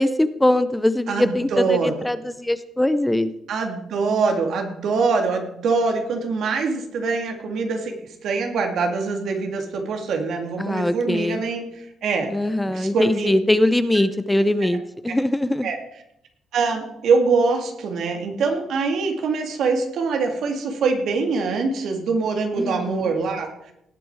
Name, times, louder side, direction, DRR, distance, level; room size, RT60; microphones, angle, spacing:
voice 1, 0.0-3.3 10.6-11.4 12.3-15.7 22.6-23.1, left 1 dB, 10° left, 12 dB, 0.7 m, -22 dB
voice 2, 1.1-1.9 3.5-12.3 12.7-13.3 15.1-15.2 15.6-15.8 16.5-23.5, right 4 dB, 70° right, 4 dB, 2.4 m, -24 dB
18.0 x 7.7 x 4.9 m, 0.80 s
cardioid pair, 90°, 0 cm